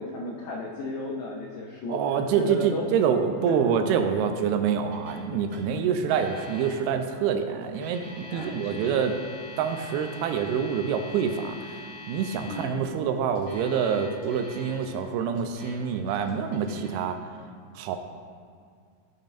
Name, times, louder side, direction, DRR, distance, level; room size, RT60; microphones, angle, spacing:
voice 1, 0.0-2.0 2.4-2.9 3.5-3.6 5.7-5.8 8.3-9.1 12.5-12.9, left 2 dB, 80° left, -1 dB, 1.9 m, -35 dB
voice 2, 1.9-9.2 9.6-11.8 12.1-17.2 17.8-18.0, right 7 dB, 90° right, 6 dB, 2.5 m, -26 dB
Alarm, 4.9-5.2 5.5-5.6 6.1-6.7 7.6-12.6 13.3-14.9 15.3-15.7 16.1-16.9, left 2 dB, 20° right, 1.0 m, -45 dB
14.0 x 5.4 x 2.5 m, 2.2 s
omnidirectional pair, 4.4 m